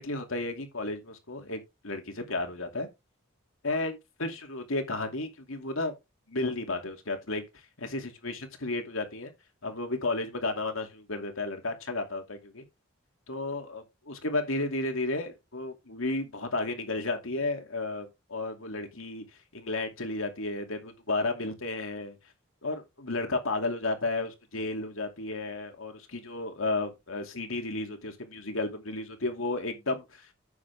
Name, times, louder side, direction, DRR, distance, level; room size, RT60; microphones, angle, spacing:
voice 1, 0.0-2.9 3.6-5.9 6.3-7.4 7.8-9.3 9.6-12.6 13.3-19.2 19.5-22.2 22.6-30.3, left 2 dB, 80° left, 2.5 m, -33 dB
9.6 x 7.7 x 3.6 m
head